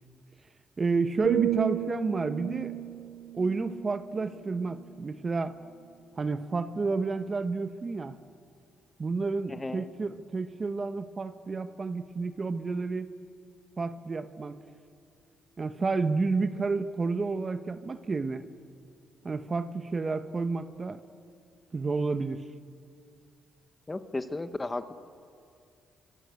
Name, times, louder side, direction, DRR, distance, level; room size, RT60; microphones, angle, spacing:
voice 1, 0.8-2.7 3.3-5.6 6.2-8.2 9.0-13.1 13.8-14.6 15.6-18.4 19.2-21.0 21.7-22.5, right 4 dB, 35° right, 11 dB, 1.1 m, -30 dB
sound 1, 1.2-5.1 5.6-5.9, right 14 dB, 80° right, 0.6 m, -33 dB
voice 2, 9.5-9.8 23.9-24.9, left 2 dB, 20° left, 10 dB, 1.2 m, -34 dB
25.5 x 25.0 x 8.3 m, 2.4 s
cardioid pair, 90°, 0 cm